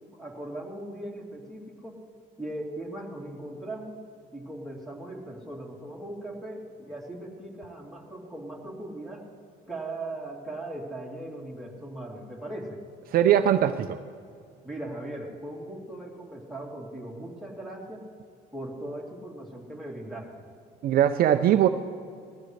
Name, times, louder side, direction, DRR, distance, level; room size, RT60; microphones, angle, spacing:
voice 1, 0.1-2.0 2.4-4.0 4.3-9.3 9.7-12.8 14.6-18.0 18.5-20.4, right 1 dB, ahead, -3 dB, 3.2 m, -39 dB
voice 2, 13.1-14.0 20.8-21.7, right 10 dB, 60° right, 8 dB, 0.6 m, -21 dB
20.5 x 15.5 x 3.3 m, 2.2 s
cardioid pair, 110°, 17 cm